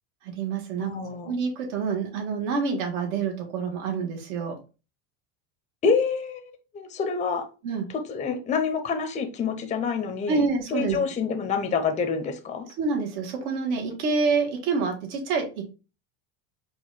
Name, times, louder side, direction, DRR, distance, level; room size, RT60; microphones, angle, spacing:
voice 1, 0.2-0.9 1.2-4.6 7.6-7.9 10.3-11.0 12.8-15.6, right 4 dB, 75° right, 1.6 m, -27 dB
voice 2, 0.8-1.4 5.8-7.5 7.9-10.4 10.7-12.7, left 5 dB, 15° left, 0.5 m, -27 dB
4.8 x 2.5 x 3.9 m
cardioid pair, 145°, 45 cm